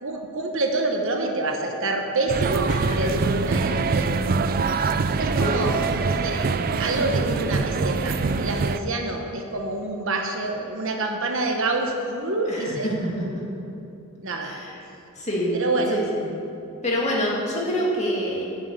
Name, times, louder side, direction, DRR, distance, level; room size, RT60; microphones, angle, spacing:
voice 1, 0.0-4.1 5.2-6.4 6.8-12.9 14.2-14.5 15.5-16.0, right 2 dB, 60° right, 3 dB, 1.1 m, -27 dB
sound 1, 2.3-8.8, right 4 dB, 40° right, 0.4 m, -24 dB
voice 2, 12.5-13.2 14.4-14.8 15.2-15.6 15.9-16.2 16.8-18.4, equal, 30° left, -4 dB, 2.3 m, -26 dB
11.0 x 6.3 x 8.4 m, 2.8 s
head